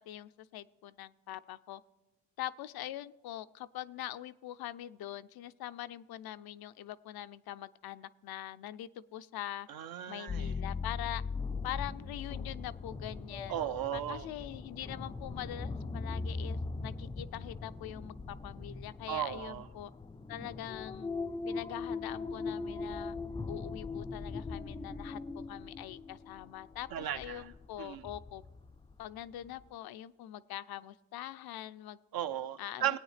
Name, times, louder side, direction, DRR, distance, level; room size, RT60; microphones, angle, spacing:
voice 1, 0.1-1.8 2.4-9.7 10.1-11.2 11.6-13.5 13.9-19.9 20.3-21.1 21.5-23.2 23.5-28.4 29.0-32.0 32.6-33.0, left 13 dB, 70° left, 14 dB, 0.5 m, -43 dB
voice 2, 9.7-10.5 13.5-14.3 19.1-19.7 26.9-27.5 27.8-28.0 32.1-33.0, right 11 dB, 65° right, 11 dB, 0.7 m, -36 dB
sound 1, 10.3-29.0 29.5-29.6, left 4 dB, 15° left, 0.3 m, -40 dB
20.5 x 8.9 x 3.2 m, 1.1 s
cardioid pair, 85°, 38 cm